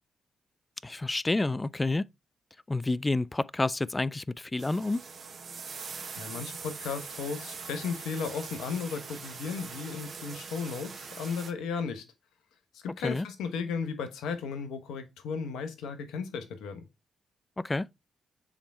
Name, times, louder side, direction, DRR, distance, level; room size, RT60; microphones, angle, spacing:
voice 1, 0.8-2.0 2.7-5.0 13.0-13.3 17.6-17.9, left 2 dB, 25° left, 0.4 m, -29 dB
sound 1, 4.6-11.5, right 5 dB, 60° right, 1.1 m, -42 dB
voice 2, 6.2-12.0 12.7-16.8, left 5 dB, 80° left, 0.9 m, -35 dB
7.1 x 3.6 x 4.2 m
hypercardioid pair, 45°, 0 cm